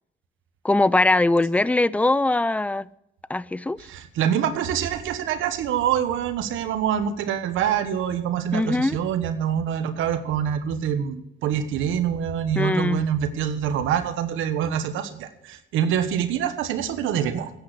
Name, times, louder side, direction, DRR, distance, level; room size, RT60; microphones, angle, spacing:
voice 1, 0.6-2.9 3.3-3.8 8.5-9.0 12.6-13.0, left 2 dB, 5° left, 0.4 m, -21 dB
voice 2, 3.8-17.5, right 9 dB, 90° right, 1.3 m, -25 dB
10.5 x 8.8 x 9.8 m
cardioid pair, 90°, 20 cm